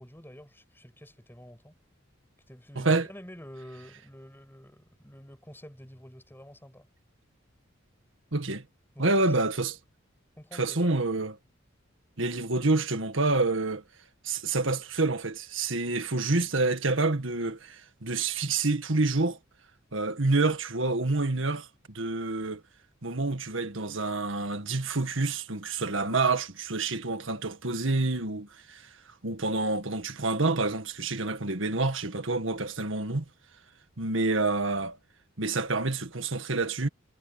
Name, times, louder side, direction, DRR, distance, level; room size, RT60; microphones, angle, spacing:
voice 1, 0.0-1.7 2.5-6.9 9.0-9.5 10.4-11.1, equal, 10° left, 6.9 m, -48 dB
voice 2, 2.8-3.1 8.3-8.6 9.0-9.8 10.5-11.4 12.2-13.8 14.2-19.4 19.9-22.6 23.0-28.8 29.2-33.2 34.0-35.0 35.4-36.9, right 3 dB, 70° right, 1.8 m, -28 dB
head